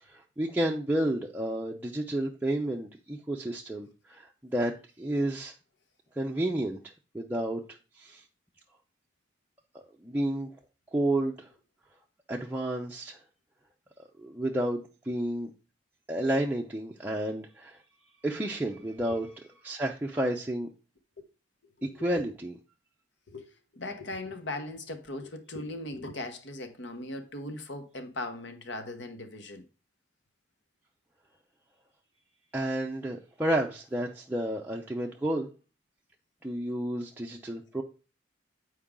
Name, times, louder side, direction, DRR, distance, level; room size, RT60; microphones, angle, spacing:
voice 1, 0.0-4.7 5.0-5.5 6.2-6.8 7.1-7.6 8.0-8.2 9.7-10.5 10.9-11.5 12.3-13.2 14.2-15.5 16.1-17.8 18.2-19.3 19.6-20.7 21.8-22.5 32.5-35.5 36.4-37.8, right 1 dB, 10° right, 0.5 m, -31 dB
voice 2, 23.3-29.6, left 2 dB, 65° left, 1.1 m, -39 dB
8.4 x 4.6 x 3.7 m
head